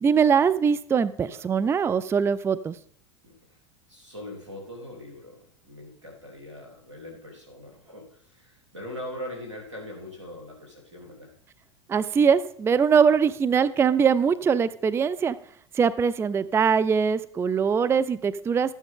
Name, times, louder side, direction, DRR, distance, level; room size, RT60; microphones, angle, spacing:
voice 1, 0.0-2.8 11.9-15.4 15.7-18.7, right 6 dB, 15° right, 14 dB, 0.4 m, -22 dB
voice 2, 3.2-3.6 3.9-11.3, left 1 dB, 90° right, 1 dB, 3.4 m, -41 dB
13.0 x 9.2 x 3.7 m, 0.62 s
hypercardioid pair, 90°, 15 cm